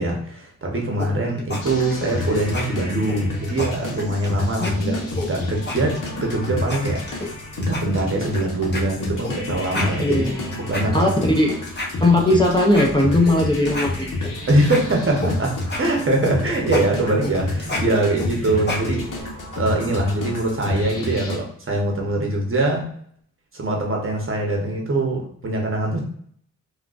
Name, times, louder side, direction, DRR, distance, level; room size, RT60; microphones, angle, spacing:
voice 1, 0.0-5.0 5.3-10.3 10.6-11.1 14.5-19.1 19.6-22.8 23.5-26.0, right 2 dB, 40° right, 0 dB, 0.8 m, -23 dB
sound 1, 1.0-1.6 1.9-2.2 2.5-2.6 3.1-4.3 4.6-4.7 5.2-6.4 6.7-7.3 7.6-8.4 8.7-8.8 9.2-9.3 9.6-11.4 11.7-13.4 13.7-15.3 15.6-19.2, left 2 dB, 30° left, 0.9 m, -30 dB
sound 2, 1.6-21.4, left 2 dB, 70° left, 0.9 m, -30 dB
voice 2, 4.6-5.0 10.0-10.5 10.9-11.1 11.4-11.6 12.0-14.1, left 1 dB, 15° left, -1 dB, 0.5 m, -19 dB
3.6 x 2.3 x 2.4 m, 0.62 s
cardioid pair, 75°, 33 cm